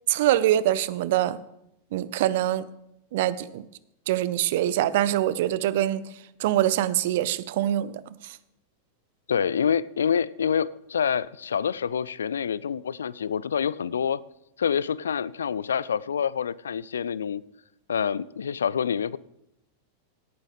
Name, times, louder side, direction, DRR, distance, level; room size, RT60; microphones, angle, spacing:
voice 1, 0.1-1.4 1.9-2.7 3.1-3.6 4.1-6.0 6.4-7.9 8.2-8.4, right 13 dB, 55° right, 0.5 m, -24 dB
voice 2, 9.3-14.2 14.6-17.4 17.9-19.2, left 7 dB, 70° left, 0.3 m, -27 dB
17.0 x 9.0 x 3.5 m
figure-of-eight pair, 90°, 0 cm